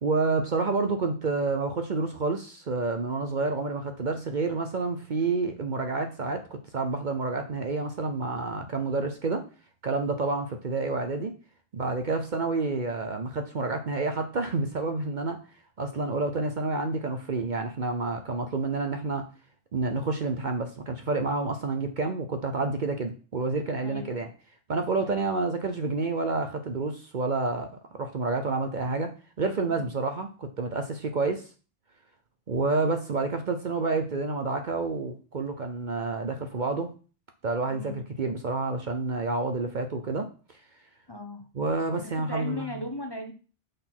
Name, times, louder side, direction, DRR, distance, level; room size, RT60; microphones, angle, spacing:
voice 1, 0.0-6.4 6.7-9.4 9.8-11.3 11.7-15.4 15.8-19.2 19.7-24.3 24.7-27.7 27.9-29.1 29.4-31.4 32.5-36.9 37.4-40.3 41.5-42.7, right 3 dB, 50° right, 6 dB, 0.8 m, -29 dB
voice 2, 23.8-24.2 25.0-25.2 29.7-29.9 37.7-38.0 41.1-41.5 42.0-43.3, left 1 dB, 25° left, 3 dB, 0.9 m, -37 dB
6.6 x 4.0 x 6.0 m, 0.37 s
omnidirectional pair, 1.2 m